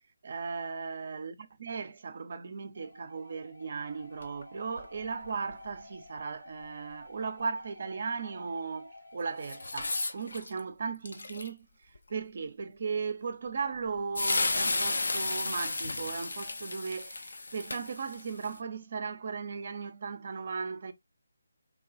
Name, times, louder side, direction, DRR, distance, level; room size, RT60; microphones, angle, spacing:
voice 1, 0.2-11.6 12.1-20.9, right 5 dB, 45° right, 0.5 m, -37 dB
sound 1, 2.7-10.0, left 2 dB, 80° left, 1.3 m, -52 dB
sound 2, 4.2-4.4 4.8-4.9 5.2-5.7 9.4-10.6 11.0-11.5 11.9-12.0 13.9-14.0 14.1-18.5, left 3 dB, 60° left, 0.4 m, -33 dB
3.2 x 2.9 x 2.4 m
figure-of-eight pair, 150°, 0 cm